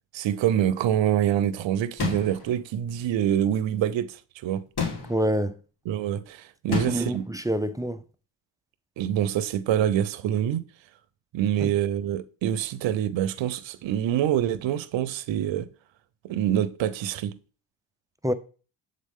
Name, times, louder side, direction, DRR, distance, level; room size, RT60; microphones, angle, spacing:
voice 1, 0.1-4.6 5.9-7.2 9.0-10.7 11.3-15.7 16.2-17.3, right 10 dB, 70° right, 0.7 m, -26 dB
sound 1, 2.0-2.5 4.8-5.3 6.7-7.2, left 5 dB, 55° left, 2.4 m, -30 dB
voice 2, 5.1-5.6 6.7-8.0 11.6-11.7 18.2-18.3, right 1 dB, 10° right, 0.4 m, -26 dB
7.4 x 3.9 x 3.6 m
cardioid pair, 70°, 47 cm